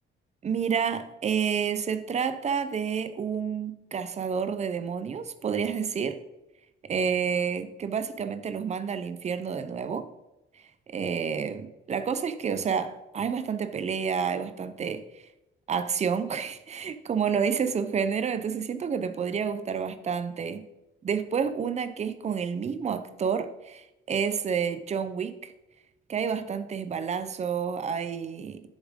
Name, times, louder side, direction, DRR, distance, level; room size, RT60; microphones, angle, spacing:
voice 1, 0.4-6.2 6.9-10.1 10.9-15.2 15.7-20.6 21.0-25.5 26.1-28.6, right 6 dB, 30° right, 10 dB, 0.6 m, -29 dB
9.9 x 7.2 x 3.7 m, 0.93 s
cardioid pair, 165°, 21 cm